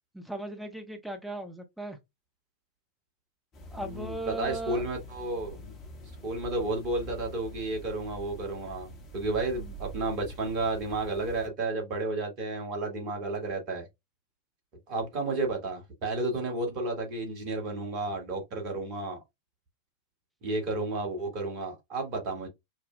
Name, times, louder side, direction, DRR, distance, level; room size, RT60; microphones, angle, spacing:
voice 1, 0.1-2.0 3.7-4.8, right 1 dB, 5° right, 0.8 m, -37 dB
sound 1, 3.5-11.5, right 1 dB, 30° left, 1.0 m, -45 dB
voice 2, 3.7-5.8 6.2-13.9 14.9-19.2 20.4-22.5, right 2 dB, 40° right, 1.5 m, -32 dB
5.3 x 2.2 x 2.2 m
figure-of-eight pair, 90°, 0 cm